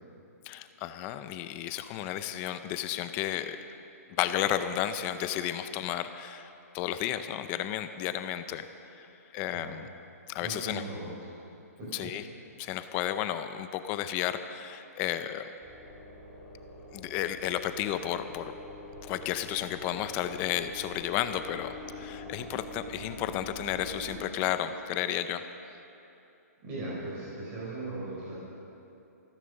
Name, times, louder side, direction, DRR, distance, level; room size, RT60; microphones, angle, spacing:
voice 1, 0.5-3.6 4.2-8.7 8.9-9.1 9.3-9.9 10.3-10.8 11.9-12.3 12.6-15.5 16.9-18.5 19.0-25.4, left 11 dB, 20° left, 10 dB, 0.4 m, -32 dB
voice 2, 10.4-11.1 12.0-12.1 26.6-28.4, right 2 dB, 25° right, -6 dB, 4.7 m, -38 dB
sound 1, 15.6-24.2, left 1 dB, 5° right, 3.0 m, -45 dB
14.5 x 14.0 x 6.5 m, 2.8 s
hypercardioid pair, 165°, 9 cm